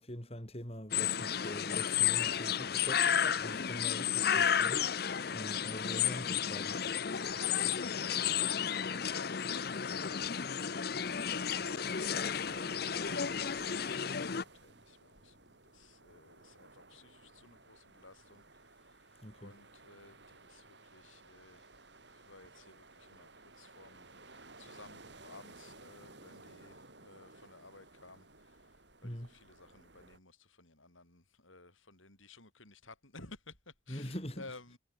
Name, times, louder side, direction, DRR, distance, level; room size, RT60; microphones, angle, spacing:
voice 1, 0.0-6.8 19.2-19.5 29.0-29.3 33.9-34.4, equal, 30° left, 4.9 m, -44 dB
sound 1, 0.9-14.4, left 8 dB, 50° left, 0.7 m, -32 dB
voice 2, 7.1-21.7 22.1-34.8, left 3 dB, 90° left, 7.7 m, -56 dB
sound 2, 11.0-30.2, right 2 dB, 60° right, 6.9 m, -56 dB
head